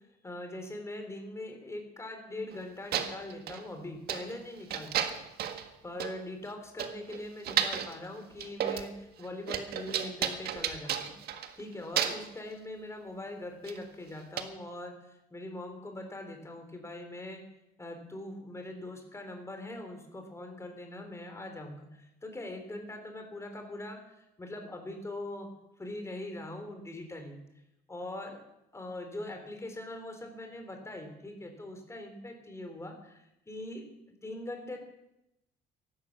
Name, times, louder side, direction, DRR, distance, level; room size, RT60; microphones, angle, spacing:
voice 1, 0.2-5.2 5.8-11.2 11.6-17.4 17.8-25.5 25.8-27.4 27.9-28.4 28.7-33.8 34.2-34.8, left 1 dB, 15° left, 5 dB, 4.0 m, -42 dB
sound 1, 2.5-2.6 2.9-3.6 4.1-4.4 4.7-5.7 6.0-6.1 6.5-6.6 6.8-8.0 8.4-8.9 9.2-11.6 12.0-12.3 13.6-13.8 14.4-14.5, right 9 dB, 70° right, 1.6 m, -33 dB
15.0 x 12.0 x 7.5 m, 0.88 s
cardioid pair, 110°, 17 cm